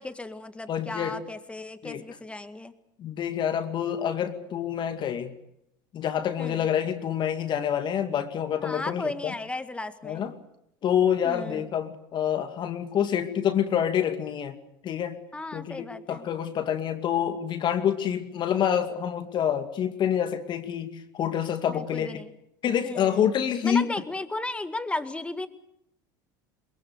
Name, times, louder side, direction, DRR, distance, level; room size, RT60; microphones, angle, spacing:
voice 1, 0.0-2.7 6.4-6.7 8.6-10.2 11.2-11.7 15.3-16.3 21.7-22.3 22.8-23.2 23.6-25.5, left 2 dB, 10° left, 10 dB, 1.9 m, -35 dB
voice 2, 0.7-1.2 1.8-2.0 3.0-5.3 5.9-9.3 10.0-10.3 10.8-14.6 14.8-15.2 15.5-22.1 22.6-23.9, left 9 dB, 45° left, 8 dB, 2.3 m, -27 dB
22.5 x 22.0 x 8.1 m, 0.78 s
hypercardioid pair, 90°, 11 cm